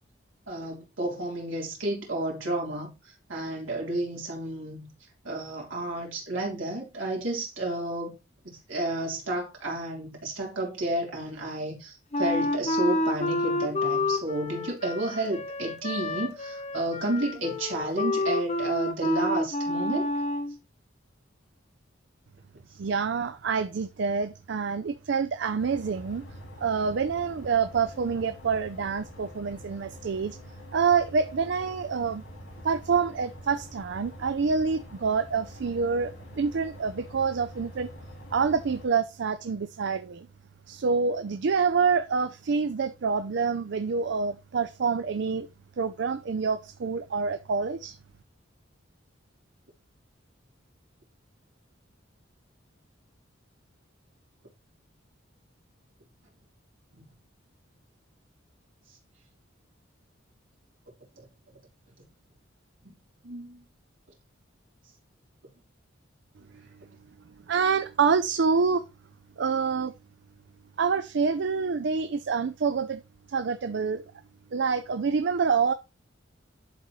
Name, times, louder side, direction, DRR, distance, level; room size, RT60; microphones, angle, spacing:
voice 1, 0.5-4.9 5.2-8.2 8.4-20.1 56.9-57.1 62.8-63.0 63.2-63.6, right 1 dB, 90° right, 3.6 m, -31 dB
Wind instrument woodwind instrument, 12.1-20.5, left 1 dB, 35° left, 1.0 m, -29 dB
voice 2, 22.8-26.2 26.6-30.4 30.7-32.2 32.6-37.9 38.3-40.3 40.7-45.5 45.8-48.0 67.5-68.8 69.4-69.9 70.8-73.0 73.3-74.0 74.5-75.7, right 5 dB, 65° right, 0.4 m, -27 dB
sound 1, 25.6-38.9, equal, 75° left, 3.0 m, -46 dB
11.5 x 4.1 x 3.1 m
head